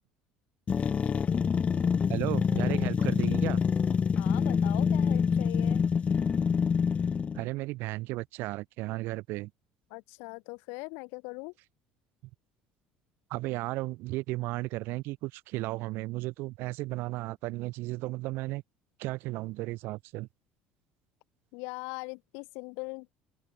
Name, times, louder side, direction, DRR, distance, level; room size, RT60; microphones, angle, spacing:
sound 1, 0.7-7.5, left 6 dB, 30° left, 0.5 m, -26 dB
voice 1, 2.1-3.6 7.3-9.5 13.3-18.6 19.0-20.3, right 20 dB, 70° right, 2.0 m, -34 dB
voice 2, 4.2-5.8 9.9-11.5 21.5-23.2, left 33 dB, 75° left, 2.9 m, -41 dB
open air
hypercardioid pair, 75°, 4 cm